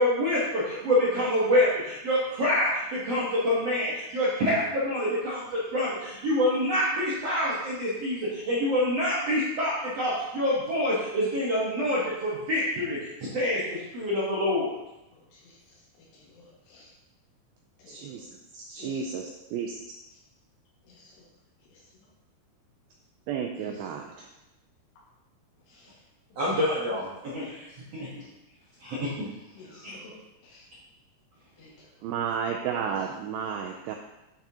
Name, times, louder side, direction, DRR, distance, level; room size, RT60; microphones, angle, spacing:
voice 1, 0.0-14.7 26.4-28.3 28.8-29.3 29.7-30.0, left 1 dB, 70° right, -8 dB, 1.5 m, -26 dB
voice 2, 15.1-16.9 17.8-18.3 18.8-19.3 20.8-21.1 23.6-24.1 25.7-26.0 26.3-26.6 27.4-27.5 29.6-30.1 30.4-30.7 31.6-32.1 32.8-33.1, left 3 dB, 85° left, -4 dB, 3.9 m, -52 dB
voice 3, 17.9-18.3 18.5-19.7 23.3-24.3 32.0-33.9, right 7 dB, 90° right, 2 dB, 2.1 m, -32 dB
8.8 x 6.0 x 2.8 m, 0.96 s
omnidirectional pair, 4.8 m